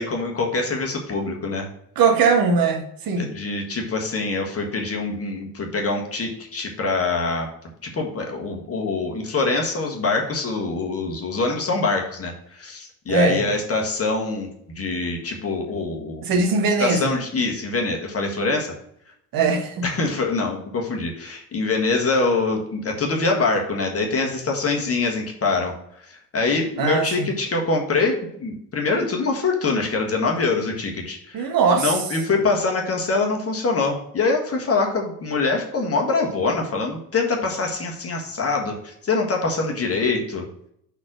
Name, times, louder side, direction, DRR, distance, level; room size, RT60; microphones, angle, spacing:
voice 1, 0.0-1.7 3.2-7.5 7.8-16.4 16.8-18.7 19.8-25.7 26.1-31.5 31.8-40.5, left 3 dB, 30° left, 1.6 m, -24 dB
voice 2, 1.9-3.3 13.1-13.4 16.2-17.1 19.3-19.9 26.8-27.3 31.3-32.0, right 4 dB, 45° right, 1.4 m, -20 dB
5.7 x 4.4 x 6.0 m
figure-of-eight pair, 55°, 47 cm